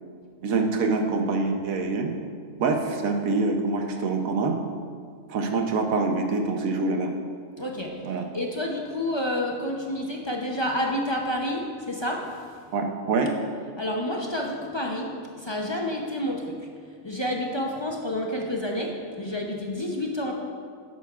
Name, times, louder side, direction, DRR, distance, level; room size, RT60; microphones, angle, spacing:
voice 1, 0.4-2.1 2.6-4.6 5.3-7.1 8.0-8.2 12.7-13.3, right 3 dB, 80° right, 3 dB, 1.2 m, -25 dB
voice 2, 7.6-7.9 8.3-12.3 13.8-15.1 15.4-16.5 17.0-20.3, left 1 dB, 35° left, 0 dB, 0.4 m, -29 dB
11.5 x 8.5 x 2.4 m, 2.1 s
omnidirectional pair, 1.4 m